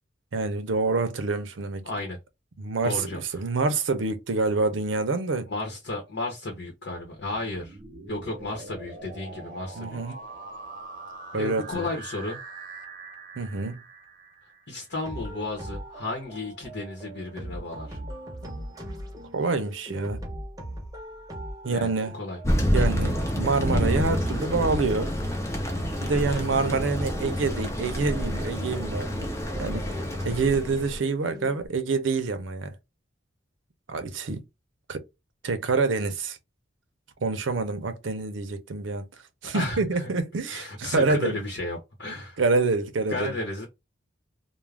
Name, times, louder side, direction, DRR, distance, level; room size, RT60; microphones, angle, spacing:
voice 1, 0.3-1.9 2.6-5.5 9.8-10.2 11.3-11.9 13.4-13.8 18.5-18.6 19.3-20.2 21.6-22.1 22.7-25.1 26.0-29.3 29.6-29.8 30.2-32.8 33.9-34.4 34.9-35.0 35.4-36.4 37.2-39.0 39.4-41.4 42.4-43.4, right 3 dB, 90° right, 0.6 m, -27 dB
voice 2, 1.8-2.2 2.8-3.5 5.5-7.8 8.1-10.0 11.3-12.4 14.7-18.0 21.7-22.4 26.1-26.5 30.3-30.4 39.5-39.8 40.5-42.4 43.1-43.7, left 2 dB, 65° left, 0.8 m, -33 dB
sound 1, 7.1-14.9, right 3 dB, 50° right, 0.8 m, -43 dB
sound 2, 15.0-31.7, equal, 20° right, 0.7 m, -40 dB
Thunder, 22.4-31.0, equal, 15° left, 0.6 m, -28 dB
2.4 x 2.1 x 3.2 m
head